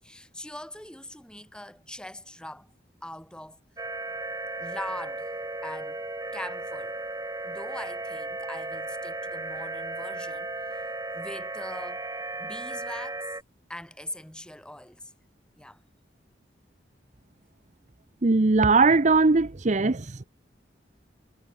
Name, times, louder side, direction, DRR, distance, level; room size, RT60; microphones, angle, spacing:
voice 1, 0.0-2.7 3.0-3.6 4.6-5.4 5.6-6.0 6.3-7.0 7.4-10.8 11.1-12.1 12.4-13.4 13.7-15.1 15.6-15.8, left 1 dB, 5° left, 7.1 m, -41 dB
sound 1, 3.8-13.4, right 2 dB, 20° right, 3.2 m, -35 dB
voice 2, 18.2-20.2, right 3 dB, 40° right, 0.8 m, -20 dB
head